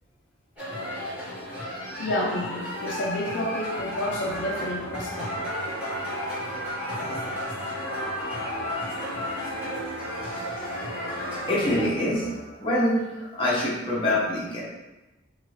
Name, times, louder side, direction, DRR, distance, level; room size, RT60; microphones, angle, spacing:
sound 1, 0.6-11.9, equal, 5° right, 1.2 m, -33 dB
voice 1, 2.0-5.5, left 1 dB, 70° left, -3 dB, 0.5 m, -30 dB
sound 2, 4.0-12.9, right 1 dB, 75° right, 1.1 m, -41 dB
voice 2, 11.5-12.3 12.6-14.6, left 1 dB, 25° left, -6 dB, 0.7 m, -25 dB
2.6 x 2.6 x 3.1 m, 1.1 s
head